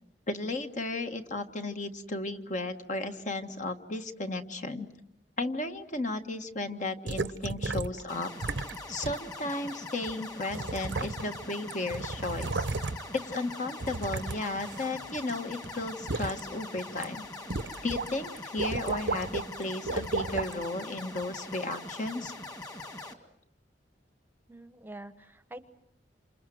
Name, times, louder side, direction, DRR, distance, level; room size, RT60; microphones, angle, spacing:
voice 1, 0.3-4.9 5.4-8.3 8.9-12.7 13.1-17.3 17.8-22.3, left 2 dB, 45° left, 7 dB, 1.5 m, -34 dB
sound 1, 7.1-8.0 8.4-8.8 9.0-9.2 10.1-10.2 10.5-11.4 11.7-13.2 13.8-15.3 15.6-16.4 16.9-17.0 17.5-18.1 18.4-19.5 19.9-20.5 21.2-21.3, right 3 dB, 90° right, 1.0 m, -33 dB
sound 2, 8.1-23.1, left 2 dB, 20° left, 2.2 m, -42 dB
voice 2, 24.5-25.7, right 1 dB, 10° right, 12 dB, 1.0 m, -46 dB
28.0 x 27.0 x 7.8 m, 0.78 s
head